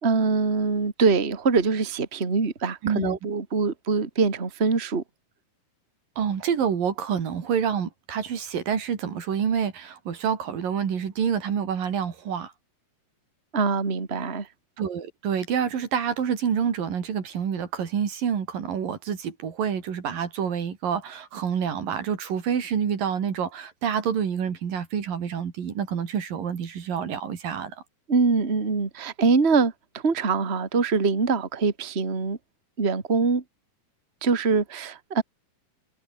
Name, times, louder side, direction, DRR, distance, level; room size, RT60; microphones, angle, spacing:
voice 1, 0.0-5.0 13.5-14.5 28.1-29.7 30.0-32.4 32.8-33.4 34.2-35.2, right 4 dB, 20° right, 2.2 m, -23 dB
voice 2, 2.8-3.2 6.2-12.5 14.8-27.8, right 7 dB, 80° right, 4.6 m, -27 dB
omnidirectional pair, 4.0 m